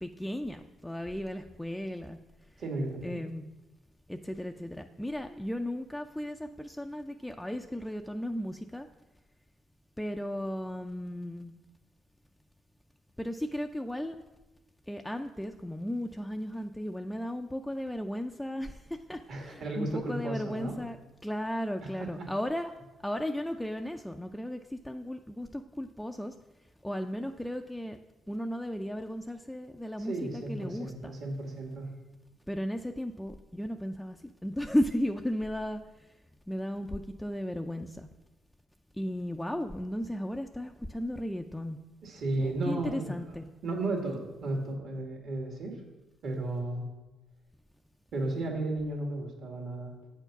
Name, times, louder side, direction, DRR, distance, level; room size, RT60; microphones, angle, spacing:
voice 1, 0.0-2.2 3.0-3.5 4.1-8.9 10.0-11.5 13.2-14.2 14.9-21.0 21.2-22.7 23.0-26.3 26.8-28.0 28.3-31.1 32.5-34.2 34.4-35.8 36.5-38.1 39.0-41.8 42.4-43.4, equal, 5° left, 5 dB, 0.4 m, -35 dB
voice 2, 2.6-3.2 19.3-20.8 21.8-22.3 30.0-31.9 42.0-43.2 43.6-45.8 46.2-46.9 48.1-49.9, right 2 dB, 65° right, 1 dB, 1.9 m, -34 dB
8.0 x 4.5 x 5.8 m, 1.1 s
cardioid pair, 90°, 0 cm